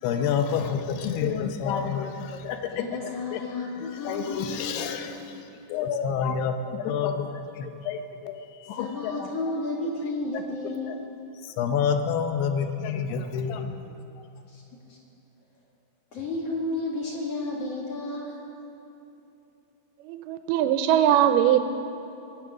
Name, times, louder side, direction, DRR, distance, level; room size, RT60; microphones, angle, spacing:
voice 1, 0.0-2.8 3.3-3.4 3.8-8.3 8.6-9.3 10.3-10.4 10.9-11.0 11.4-13.9, left 7 dB, 80° left, 6 dB, 2.7 m, -29 dB
voice 2, 2.7-5.0 8.7-11.0 14.5-15.0 16.1-18.4, left 2 dB, 45° left, -3 dB, 2.6 m, -32 dB
voice 3, 20.0-21.6, right 10 dB, 80° right, 9 dB, 2.4 m, -21 dB
22.5 x 8.7 x 5.9 m, 2.8 s
omnidirectional pair, 4.7 m